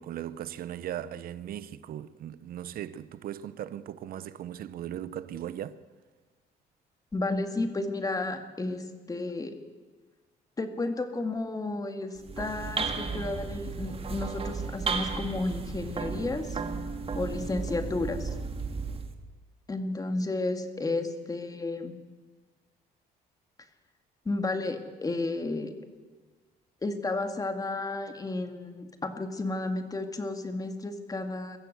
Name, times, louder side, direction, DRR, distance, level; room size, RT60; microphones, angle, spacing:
voice 1, 0.0-5.8, right 11 dB, 65° right, 0.8 m, -38 dB
voice 2, 7.1-9.6 10.6-16.6 17.1-18.3 19.7-21.9 24.3-25.7 26.8-31.6, left 2 dB, 20° left, 2.2 m, -32 dB
sound 1, 12.2-19.1, right 5 dB, 35° right, 2.0 m, -34 dB
23.0 x 14.5 x 8.1 m
cardioid pair, 105°, 16 cm